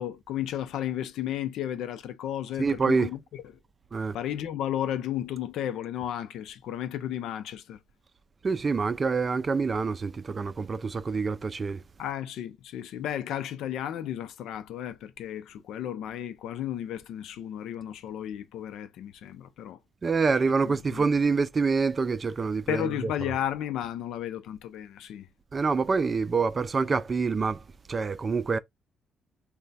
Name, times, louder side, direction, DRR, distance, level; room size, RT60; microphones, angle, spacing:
voice 1, 0.0-3.4 4.1-7.8 12.0-19.8 20.6-21.1 22.7-25.3, left 11 dB, 85° left, 0.6 m, -33 dB
voice 2, 2.6-3.1 3.9-4.2 8.4-11.8 20.0-22.9 25.5-27.6 27.9-28.6, right 4 dB, 35° right, 0.4 m, -26 dB
3.2 x 2.2 x 4.0 m
cardioid pair, 90°, 0 cm